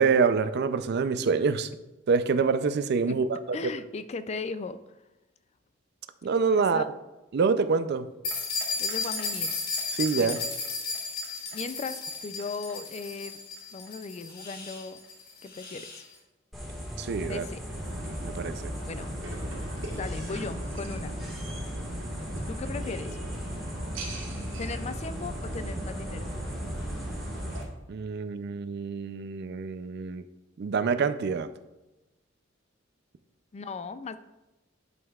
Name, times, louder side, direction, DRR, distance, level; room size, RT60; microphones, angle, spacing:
voice 1, 0.0-1.7 2.1-3.4 6.2-6.8 7.3-8.1 9.9-10.4 17.0-17.4 18.2-18.7 27.9-30.2 30.6-31.5, right 5 dB, 55° right, 11 dB, 0.4 m, -26 dB
voice 2, 3.5-4.8 6.6-6.8 8.8-9.5 10.2-10.4 11.5-13.4 13.7-15.0 15.4-16.0 17.2-17.6 18.5-19.1 19.9-21.2 22.5-23.2 24.6-26.3 33.5-34.2, left 4 dB, 35° left, 13 dB, 0.3 m, -37 dB
sound 1, 8.2-16.0, left 4 dB, 55° left, 1.3 m, -34 dB
sound 2, 16.5-27.6, equal, ahead, 1.6 m, -38 dB
sound 3, 17.7-27.6, right 1 dB, 85° right, 2.0 m, -38 dB
11.0 x 5.4 x 2.3 m, 1.0 s
head